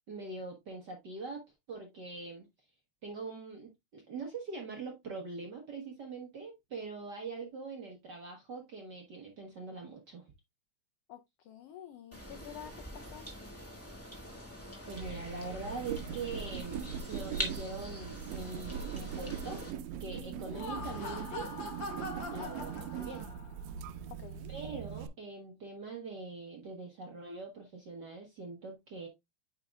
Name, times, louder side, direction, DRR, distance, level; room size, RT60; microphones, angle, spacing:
voice 1, 0.1-2.5 3.0-10.3 14.9-19.6 20.0-21.5 22.3-23.3 24.5-29.1, right 3 dB, 55° right, 1.2 m, -43 dB
voice 2, 11.1-13.3 20.2-20.4 24.1-24.5, left 9 dB, 80° left, 1.3 m, -49 dB
sound 1, 12.1-19.7, equal, 10° left, 1.1 m, -44 dB
sound 2, 14.9-25.1, right 8 dB, 80° right, 1.8 m, -41 dB
Laughter, 20.4-23.6, left 2 dB, 45° left, 2.1 m, -42 dB
8.9 x 5.0 x 2.3 m
omnidirectional pair, 3.3 m